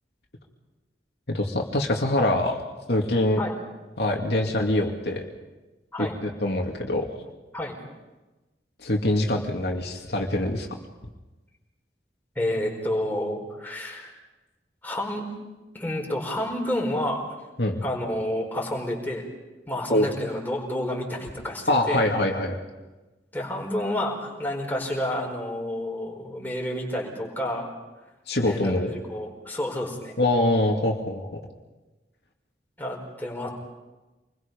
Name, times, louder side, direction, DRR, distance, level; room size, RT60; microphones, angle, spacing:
voice 1, 1.3-2.6 2.9-3.4 4.0-5.2 6.2-7.1 8.8-10.7 17.6-17.8 19.9-20.1 21.7-22.6 28.3-28.9 30.2-31.4, left 1 dB, 70° left, 0 dB, 2.6 m, -24 dB
voice 2, 12.3-14.1 14.8-15.3 15.7-17.2 17.8-19.2 19.7-22.0 23.3-27.7 28.4-30.2 32.8-33.5, left 1 dB, 10° left, -1 dB, 4.6 m, -30 dB
27.5 x 21.5 x 5.4 m, 1.1 s
head